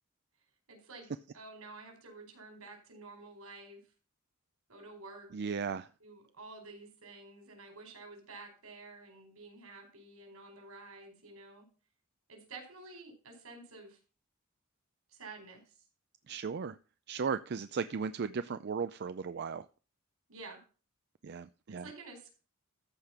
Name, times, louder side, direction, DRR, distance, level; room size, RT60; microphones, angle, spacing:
voice 1, 0.7-1.1 1.3-3.8 4.7-5.3 6.0-11.7 12.3-14.0 15.1-15.7 20.3-20.6 21.8-22.3, right 3 dB, 80° right, 3 dB, 4.7 m, -50 dB
voice 2, 5.3-5.9 16.3-16.8 17.1-19.7 21.2-21.9, right 5 dB, 50° right, 12 dB, 0.5 m, -36 dB
14.0 x 5.1 x 5.9 m, 0.35 s
head